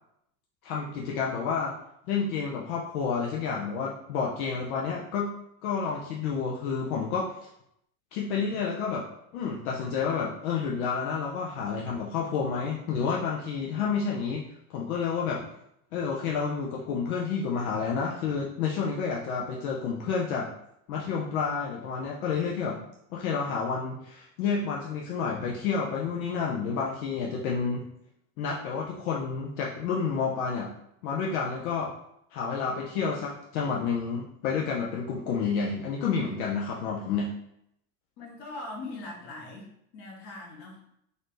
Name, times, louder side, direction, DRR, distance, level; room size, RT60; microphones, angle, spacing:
voice 1, 0.6-1.7 2.1-5.3 5.6-7.5 8.1-9.1 9.3-14.4 14.7-15.5 15.9-20.5 20.9-22.8 23.1-27.8 28.4-30.7 31.0-31.9 32.3-37.3, left 5 dB, 80° left, -2 dB, 0.7 m, -30 dB
voice 2, 38.2-41.0, left 2 dB, 55° left, -1 dB, 1.4 m, -41 dB
4.0 x 2.6 x 3.2 m, 0.76 s
supercardioid pair, 120°, 42 cm